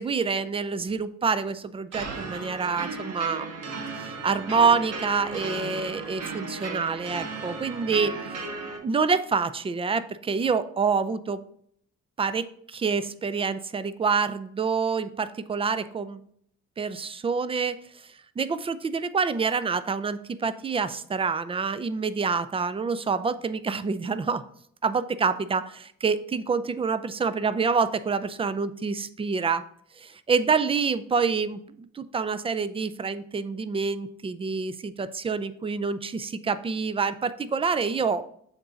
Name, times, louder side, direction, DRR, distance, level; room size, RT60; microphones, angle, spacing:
voice 1, 0.0-3.5 4.0-8.5 8.8-11.4 12.2-16.2 16.8-17.8 18.4-24.4 24.8-29.6 30.0-38.3, right 5 dB, 20° right, 14 dB, 0.4 m, -27 dB
sound 1, 1.9-8.8, right 4 dB, 60° right, 1.5 m, -35 dB
7.2 x 4.0 x 5.0 m, 0.66 s
cardioid pair, 120°, 29 cm